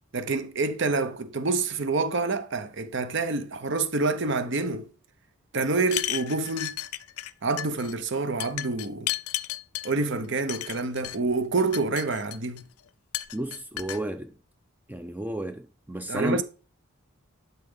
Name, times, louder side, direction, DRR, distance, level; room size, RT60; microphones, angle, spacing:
voice 1, 0.1-4.9 5.5-6.8 7.4-9.1 9.8-12.6 16.1-16.4, right 3 dB, 55° right, 0.8 m, -27 dB
sound 1, 5.8-7.3 7.6-7.9 8.4-9.9 10.5-11.2 11.6-12.6 13.1-14.0, left 14 dB, 85° left, 0.5 m, -33 dB
voice 2, 13.3-14.3 14.9-16.4, right 1 dB, 10° right, 0.3 m, -32 dB
11.5 x 4.3 x 3.7 m
head